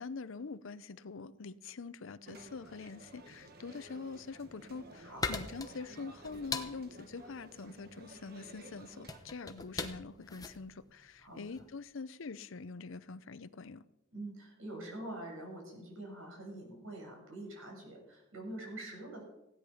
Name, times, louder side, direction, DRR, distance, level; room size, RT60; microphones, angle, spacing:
voice 1, 0.0-13.8, left 4 dB, 65° left, 15 dB, 0.6 m, -45 dB
sound 1, 2.3-9.2, right 1 dB, 45° right, 1.5 m, -54 dB
sound 2, 4.3-11.8, left 4 dB, 15° left, 0.9 m, -42 dB
voice 2, 5.0-5.4 9.5-9.7 11.2-11.4 14.1-19.2, right 1 dB, 70° right, 0 dB, 6.7 m, -45 dB
16.5 x 10.0 x 5.6 m, 0.89 s
head